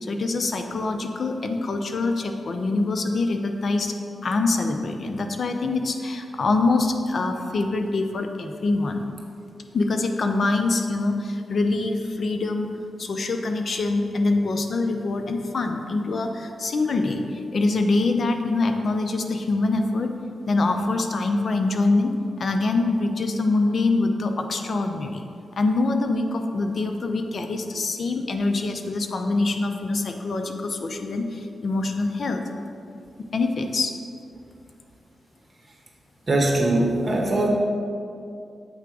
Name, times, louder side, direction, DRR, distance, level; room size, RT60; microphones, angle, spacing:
voice 1, 0.0-3.9 4.2-9.1 9.7-20.1 20.5-25.2 25.5-32.4 33.3-33.9, left 3 dB, 60° left, 5 dB, 0.7 m, -24 dB
voice 2, 36.3-37.5, right 1 dB, 40° right, 0 dB, 1.5 m, -21 dB
8.2 x 3.5 x 6.1 m, 2.5 s
cardioid pair, 60°, 0 cm